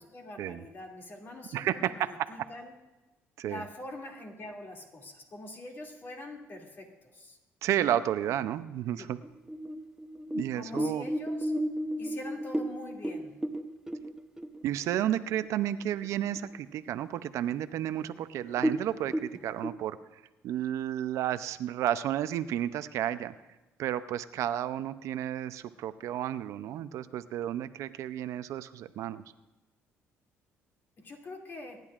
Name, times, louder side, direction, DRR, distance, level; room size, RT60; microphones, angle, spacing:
voice 1, 0.0-2.7 3.4-7.4 9.0-9.1 10.5-11.5 12.0-13.4 31.0-31.8, left 2 dB, 45° left, 1 dB, 2.5 m, -44 dB
voice 2, 1.5-2.3 3.4-3.6 7.6-9.2 10.3-11.1 14.6-20.0 20.4-23.3 23.8-29.2, right 11 dB, 75° right, 13 dB, 0.5 m, -32 dB
sound 1, 9.2-15.1 15.4-15.5 15.9-16.5 16.9-17.0 17.6-17.7 18.0-18.1 18.5-19.7, right 1 dB, 10° right, 0.8 m, -33 dB
24.5 x 10.5 x 2.5 m, 1.1 s
cardioid pair, 115°, 5 cm